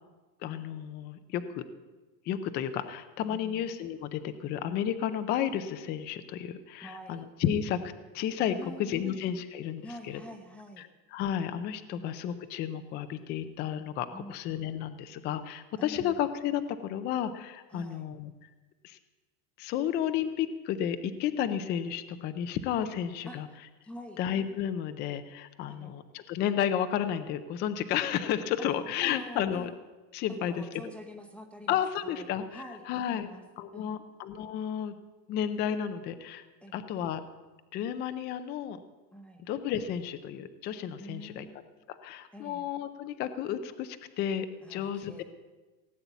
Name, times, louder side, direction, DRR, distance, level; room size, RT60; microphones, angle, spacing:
voice 1, 0.4-1.6 2.3-7.8 8.1-8.5 8.8-10.2 10.8-18.3 18.8-19.0 19.6-23.5 24.2-29.7 30.1-30.6 31.7-33.3 33.6-35.0 35.3-36.4 36.7-37.2 37.7-38.8 39.5-41.5 41.9-45.2, left 9 dB, 20° left, 10 dB, 0.4 m, -32 dB
voice 2, 3.3-3.6 6.8-7.2 8.5-9.2 9.8-10.9 11.9-12.1 14.1-14.3 15.8-16.2 17.7-18.0 23.2-24.2 25.7-25.9 29.0-29.7 30.3-33.4 33.7-34.1 36.6-37.0 39.1-39.4 41.0-41.7 42.3-42.6 44.6-45.2, equal, 5° left, 4 dB, 0.9 m, -46 dB
17.5 x 8.7 x 8.1 m, 1.2 s
supercardioid pair, 170°, 48 cm